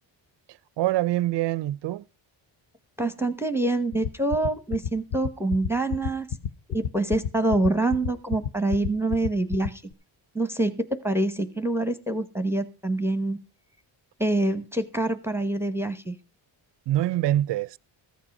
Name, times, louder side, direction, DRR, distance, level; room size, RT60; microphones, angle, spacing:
voice 1, 0.8-2.0 16.9-17.8, right 14 dB, 60° right, 0.5 m, -25 dB
voice 2, 3.0-6.3 6.7-9.8 10.3-13.4 14.2-16.2, right 2 dB, 5° right, 0.9 m, -26 dB
sound 1, 3.9-9.9, left 7 dB, 55° left, 0.7 m, -29 dB
14.0 x 7.3 x 5.3 m
cardioid pair, 95°, 47 cm